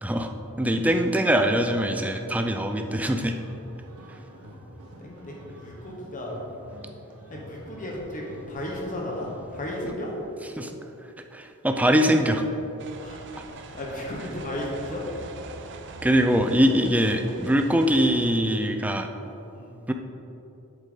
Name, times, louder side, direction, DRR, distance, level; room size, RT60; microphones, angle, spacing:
voice 1, 0.0-0.3 0.6-3.4 10.6-10.7 11.3-12.4 16.0-19.1 19.9-20.0, equal, 5° right, 5 dB, 0.4 m, -22 dB
sound 1, 0.6-10.2, equal, 80° right, 1.4 m, -46 dB
voice 2, 5.0-6.3 7.3-10.1 13.0-13.2 13.5-15.0 19.5-19.8, left 1 dB, 35° left, -2 dB, 1.1 m, -34 dB
sound 2, 12.8-18.4, right 3 dB, 55° right, 0.6 m, -42 dB
8.3 x 7.4 x 3.8 m, 3.0 s
head